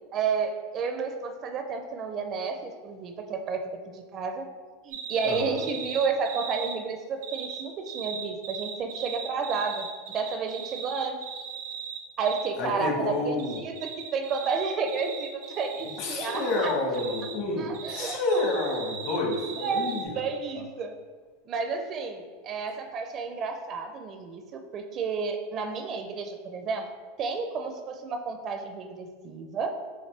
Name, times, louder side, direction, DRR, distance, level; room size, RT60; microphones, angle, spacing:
voice 1, 0.1-4.4 4.8-11.2 12.2-16.7 17.6-18.2 19.6-20.9 21.5-26.9 27.2-29.7, right 5 dB, 35° right, 6 dB, 0.5 m, -31 dB
sound 1, 4.9-6.8 7.2-12.5 13.4-17.4 17.7-20.1, right 7 dB, 80° right, 0.9 m, -38 dB
voice 2, 5.2-5.6 12.6-13.6 16.0-20.2, left 2 dB, 55° left, 0 dB, 1.2 m, -29 dB
5.6 x 2.8 x 3.3 m, 1.5 s
supercardioid pair, 125°, 0 cm